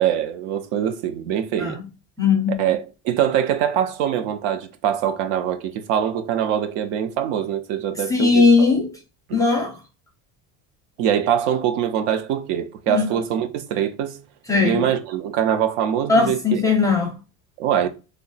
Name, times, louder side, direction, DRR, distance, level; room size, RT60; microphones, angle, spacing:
voice 1, 0.0-1.8 2.6-8.7 9.3-9.4 11.0-14.2 14.6-16.6 17.6-17.9, right 9 dB, 65° right, 0.7 m, -23 dB
voice 2, 2.2-2.6 8.1-8.9 9.3-9.7 12.9-13.1 14.5-14.8 16.1-17.1, left 4 dB, 10° left, 0.4 m, -18 dB
3.4 x 2.1 x 3.9 m
cardioid pair, 165°, 46 cm